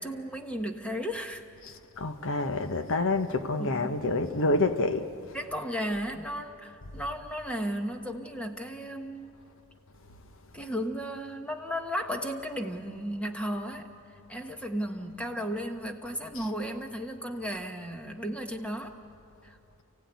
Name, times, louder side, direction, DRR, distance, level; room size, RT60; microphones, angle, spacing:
voice 1, 0.0-1.5 3.6-4.0 5.3-9.4 10.5-13.9 14.3-18.9 19.4-19.6, equal, 5° left, 1.3 m, -34 dB
voice 2, 1.6-5.3 16.3-16.5, left 2 dB, 60° left, 1.1 m, -28 dB
29.5 x 16.0 x 9.5 m
head